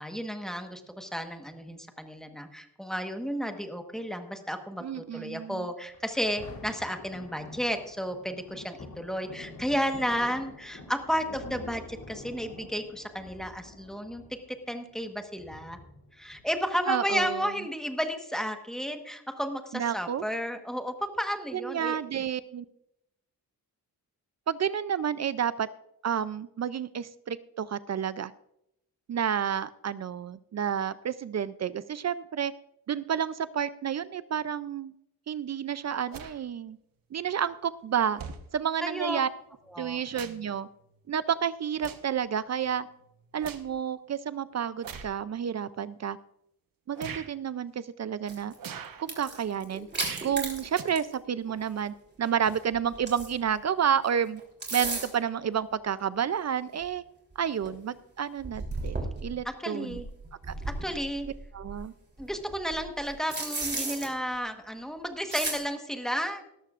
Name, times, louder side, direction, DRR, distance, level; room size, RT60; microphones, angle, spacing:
voice 1, 0.0-14.2 14.7-15.8 16.2-22.0 38.8-39.2 39.7-40.0 59.4-60.1 60.8-61.3 62.2-66.4, equal, ahead, 5 dB, 1.2 m, -32 dB
voice 2, 4.8-5.7 16.9-17.5 19.7-20.2 21.5-22.6 24.5-25.7 26.0-28.3 29.1-32.5 32.9-34.9 35.3-36.8 37.1-38.2 38.5-39.3 39.8-40.7 41.1-42.9 43.3-46.2 46.9-48.5 49.0-49.9 50.2-54.4 54.7-57.0 57.4-60.0 60.5-60.6 61.5-61.9, right 8 dB, 45° right, 15 dB, 0.4 m, -30 dB
Thunder, 5.9-16.9 17.5-17.6, left 3 dB, 65° left, 2.9 m, -47 dB
sound 1, 36.1-36.4 37.4-37.5 38.2-38.4 39.7-40.5 40.9-41.1 41.8-42.2 42.6-43.7 44.8-45.1 45.9-46.0 46.9-47.3 48.6-49.0 50.0-50.4 50.7-50.8, right 7 dB, 60° right, 1.1 m, -42 dB
sound 2, 48.3-48.6 49.0-51.1 51.5-51.6 52.4-53.5 54.4-55.3 56.2-56.3 56.8-56.9 57.3-57.4 57.6-57.7 58.4-59.4 59.9-61.8 62.2-64.1 65.3-65.6, right 3 dB, 25° right, 3.2 m, -35 dB
18.5 x 13.5 x 2.5 m, 0.80 s
wide cardioid pair, 145°, 37 cm